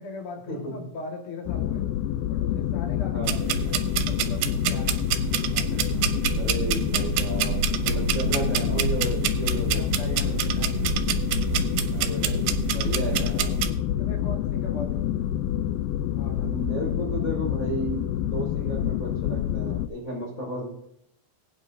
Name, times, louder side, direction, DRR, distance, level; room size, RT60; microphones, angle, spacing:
voice 1, 0.0-1.9 2.3-5.0 5.5-6.4 8.3-8.6 9.5-10.9 13.1-13.3 14.0-15.3 16.1-16.7, left 3 dB, 45° left, 1 dB, 1.9 m, -39 dB
sound 1, 1.5-19.9, left 12 dB, 85° left, 2.1 m, -27 dB
sound 2, 3.2-13.7, right 10 dB, 85° right, 2.9 m, -28 dB
voice 2, 6.4-9.8 11.9-13.5 16.3-20.6, right 1 dB, 20° left, -4 dB, 4.6 m, -33 dB
21.0 x 9.0 x 2.7 m, 0.78 s
omnidirectional pair, 4.7 m